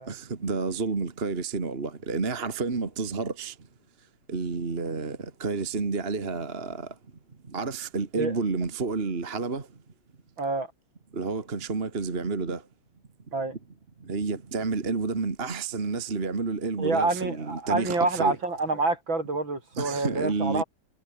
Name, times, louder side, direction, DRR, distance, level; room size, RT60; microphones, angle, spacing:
voice 1, 0.1-3.5 4.3-6.9 7.5-9.7 11.1-12.6 14.1-18.4 19.8-20.6, right 4 dB, 30° right, 2.0 m, -30 dB
voice 2, 10.4-10.7 13.3-13.6 16.8-20.6, right 3 dB, 65° right, 6.5 m, -27 dB
omnidirectional pair, 2.3 m